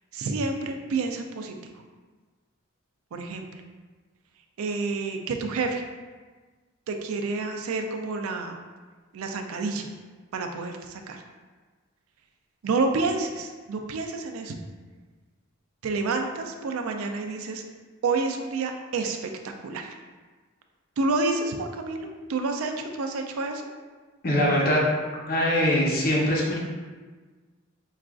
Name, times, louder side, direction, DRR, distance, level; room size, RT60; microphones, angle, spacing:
voice 1, 0.1-1.6 3.1-3.5 4.6-5.8 6.9-8.6 9.1-9.9 10.3-11.2 12.6-14.6 15.8-17.7 18.0-20.0 21.0-23.6, right 3 dB, 85° right, 4 dB, 0.4 m, -29 dB
voice 2, 24.2-24.8 25.3-26.6, equal, 45° left, -3 dB, 0.7 m, -22 dB
4.7 x 2.4 x 2.3 m, 1.4 s
head